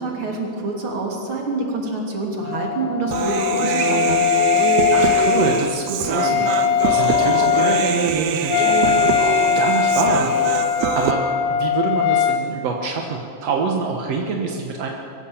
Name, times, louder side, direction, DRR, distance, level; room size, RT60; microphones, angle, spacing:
voice 1, 0.0-4.3, right 3 dB, 35° right, 0 dB, 3.2 m, -26 dB
Wind instrument woodwind instrument, 2.4-12.5, left 9 dB, 75° left, 3.0 m, -20 dB
Human voice, 3.1-11.1, right 8 dB, 85° right, 3.0 m, -24 dB
voice 2, 4.9-6.4 6.8-10.3 10.9-11.2 11.5-14.9, right 5 dB, 60° right, 1 dB, 1.7 m, -25 dB
23.0 x 16.0 x 7.3 m, 2.9 s
omnidirectional pair, 4.6 m